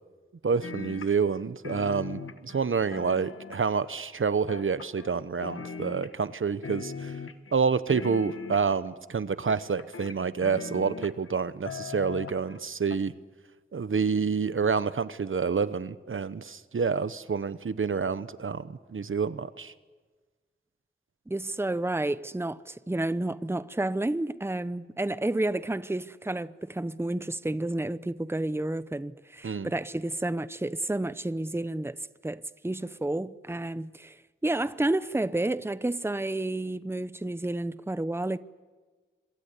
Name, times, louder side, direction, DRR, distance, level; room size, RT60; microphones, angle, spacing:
voice 1, 0.4-7.1 7.5-13.1 13.7-19.7 29.4-29.7, right 5 dB, 75° right, 1.0 m, -28 dB
sound 1, 0.6-1.4 1.6-3.9 4.5-5.2 5.4-6.4 6.6-7.5 7.9-8.9 9.5-11.3 11.7-12.6 12.9-13.0, left 5 dB, 85° left, 1.3 m, -39 dB
voice 2, 21.3-34.2 34.4-38.4, right 2 dB, 10° right, 0.8 m, -30 dB
26.0 x 22.5 x 8.3 m
wide cardioid pair, 65°, 21 cm